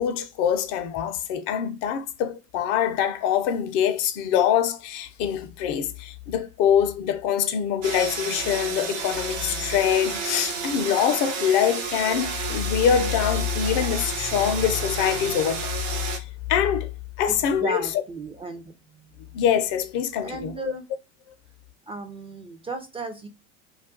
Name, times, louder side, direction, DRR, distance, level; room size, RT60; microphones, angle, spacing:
voice 1, 0.0-15.8 16.1-16.2 16.5-16.9 17.2-18.0 19.3-20.7, left 9 dB, 55° left, 0.6 m, -24 dB
sound 1, 7.8-16.2, right 5 dB, 80° right, 0.8 m, -31 dB
voice 2, 17.3-18.7 20.2-20.8 21.9-23.3, right 3 dB, 15° right, 0.4 m, -35 dB
2.4 x 2.2 x 3.6 m
hypercardioid pair, 80°, 37 cm